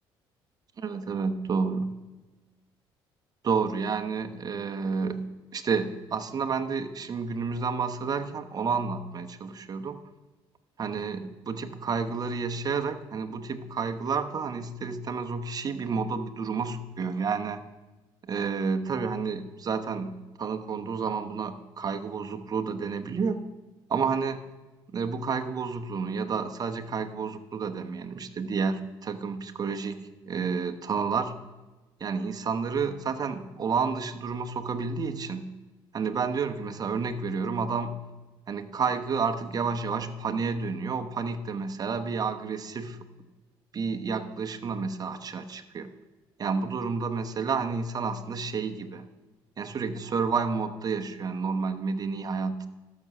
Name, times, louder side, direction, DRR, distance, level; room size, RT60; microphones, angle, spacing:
voice 1, 0.8-1.9 3.4-5.3 5.5-10.0 10.8-17.6 18.2-23.4 23.9-24.4 24.9-30.0 30.3-31.4 32.0-35.5 35.9-38.0 38.5-43.0 43.7-45.9 46.4-49.1 49.6-52.7, right 5 dB, 40° right, 6 dB, 1.0 m, -30 dB
13.5 x 6.1 x 6.8 m, 1.2 s
cardioid pair, 85°, 10 cm